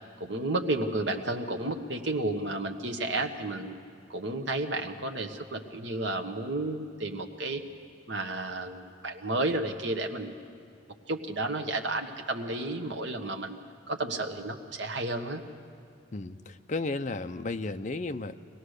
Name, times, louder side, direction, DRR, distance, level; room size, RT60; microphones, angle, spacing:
voice 1, 0.2-3.7 4.1-7.6 8.1-10.4 11.1-13.6 13.9-15.4, right 2 dB, 60° right, 4 dB, 1.2 m, -32 dB
voice 2, 16.1-18.3, left 3 dB, 35° left, 9 dB, 0.5 m, -33 dB
23.5 x 17.5 x 6.5 m, 2.4 s
head